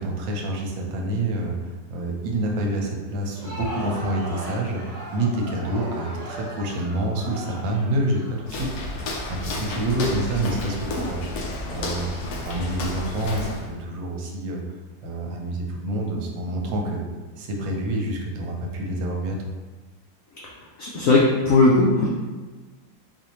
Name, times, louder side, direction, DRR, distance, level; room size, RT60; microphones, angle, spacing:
voice 1, 0.0-8.7 9.3-14.6 15.0-17.0 17.4-19.5, right 1 dB, 80° right, 1 dB, 1.4 m, -27 dB
Crowd, 3.1-9.0, equal, 30° right, 0.4 m, -37 dB
Walk footsteps, 8.4-13.7, left 2 dB, 70° left, 1.0 m, -31 dB
voice 2, 20.8-22.1, left 2 dB, 85° left, -3 dB, 0.7 m, -18 dB
4.1 x 2.6 x 2.9 m, 1.3 s
omnidirectional pair, 2.0 m